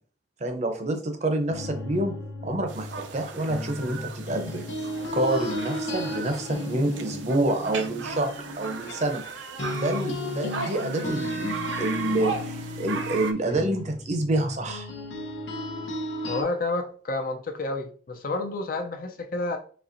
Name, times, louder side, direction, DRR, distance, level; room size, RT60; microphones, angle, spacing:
voice 1, 0.4-2.2 2.4-4.9 5.1-8.3 8.6-9.2 9.7-14.9, right 1 dB, 40° right, 5 dB, 0.6 m, -28 dB
sound 1, 1.5-9.3 9.6-16.4, left 1 dB, 80° left, 0.8 m, -34 dB
sound 2, 2.7-13.3, right 4 dB, 80° right, 0.5 m, -37 dB
voice 2, 16.3-19.6, left 2 dB, 50° left, 5 dB, 0.5 m, -30 dB
4.2 x 3.0 x 2.5 m, 0.43 s
head